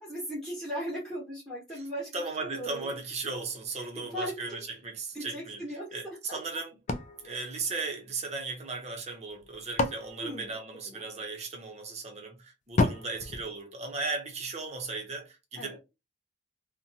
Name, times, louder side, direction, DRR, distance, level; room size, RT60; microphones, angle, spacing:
voice 1, 0.0-3.0 3.8-4.6 5.1-6.4 7.2-7.5 10.2-10.5 10.8-11.0 15.6-15.8, equal, ahead, 1.0 m, -38 dB
voice 2, 2.1-5.6 5.9-6.8 7.2-15.8, right 3 dB, 35° right, 0.7 m, -36 dB
sound 1, 6.9-8.4 9.3-11.3 12.8-14.4, left 2 dB, 40° left, 0.3 m, -33 dB
2.6 x 2.1 x 2.7 m
head